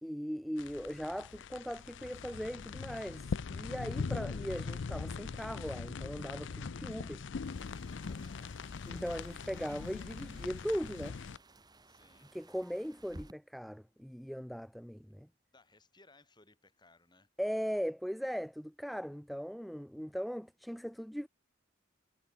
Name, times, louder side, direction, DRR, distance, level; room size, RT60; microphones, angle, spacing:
voice 1, 0.0-7.2 8.9-11.2 12.3-15.3 17.4-21.3, equal, ahead, 0.3 m, -39 dB
sound 1, 0.6-11.4, left 4 dB, 60° left, 0.5 m, -41 dB
sound 2, 7.4-13.3, right 1 dB, 20° right, 2.1 m, -57 dB
voice 2, 8.1-8.6 11.8-12.3 15.5-17.3, left 2 dB, 20° left, 6.1 m, -64 dB
head